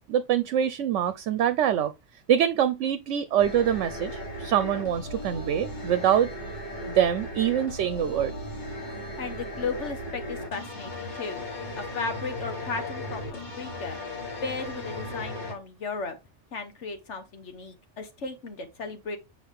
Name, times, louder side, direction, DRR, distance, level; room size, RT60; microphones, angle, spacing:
voice 1, 0.1-1.9 2.3-6.3 6.9-8.3, right 9 dB, 80° right, 1.0 m, -24 dB
sound 1, 3.4-15.5, left 1 dB, 40° left, 1.8 m, -36 dB
voice 2, 9.2-11.4 11.7-14.0 14.4-16.2 16.5-19.2, left 4 dB, 75° left, 1.5 m, -35 dB
7.4 x 4.8 x 3.6 m
omnidirectional pair, 1.2 m